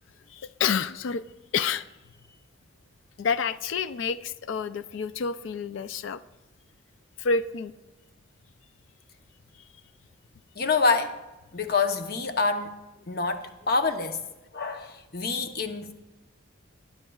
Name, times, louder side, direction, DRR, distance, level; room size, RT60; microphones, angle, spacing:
voice 1, 0.3-1.2 1.5-1.9 3.2-6.2 7.2-7.7, left 5 dB, 70° left, 0.4 m, -28 dB
voice 2, 10.6-11.2 11.5-12.7 13.1-14.2 14.5-15.9, left 4 dB, 50° left, 0.8 m, -26 dB
19.0 x 9.9 x 2.3 m
head